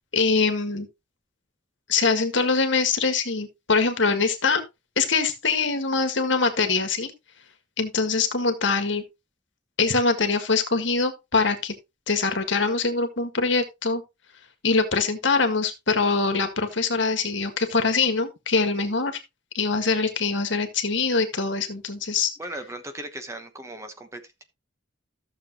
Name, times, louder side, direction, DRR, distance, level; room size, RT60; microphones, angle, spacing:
voice 1, 0.1-0.9 1.9-4.6 5.0-7.1 7.8-9.0 9.8-11.7 12.1-14.0 14.6-19.2 19.5-22.3, left 4 dB, 65° left, 1.7 m, -23 dB
voice 2, 22.4-24.2, right 1 dB, 15° right, 1.1 m, -37 dB
14.0 x 7.0 x 3.0 m
head